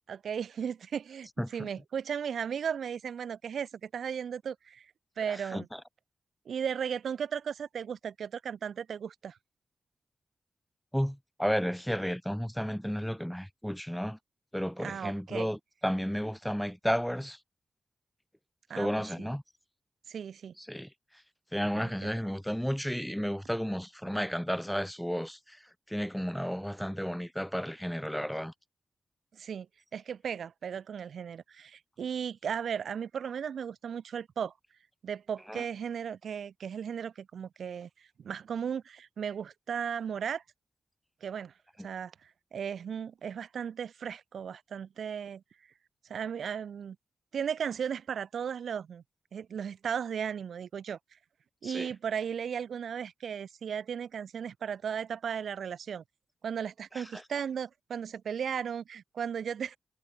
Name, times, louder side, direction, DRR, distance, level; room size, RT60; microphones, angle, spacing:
voice 1, 0.1-4.9 5.2-5.7 6.5-9.4 14.8-15.5 18.7-18.9 19.2-19.3 20.1-20.5 21.7-21.9 29.3-29.7 29.9-34.5 35.0-40.4 41.2-41.5 41.8-45.4 46.1-47.0 47.3-49.0 49.3-51.0 51.6-56.0 56.4-59.8, right 7 dB, 85° right, 0.8 m, -36 dB
voice 2, 1.4-1.7 5.3-5.6 10.9-14.2 14.5-17.4 18.7-19.4 20.6-20.9 21.5-25.6 25.9-28.5 35.5-35.6 51.6-51.9 56.9-57.2, equal, ahead, 2.3 m, -33 dB
cardioid pair, 80°, 0 cm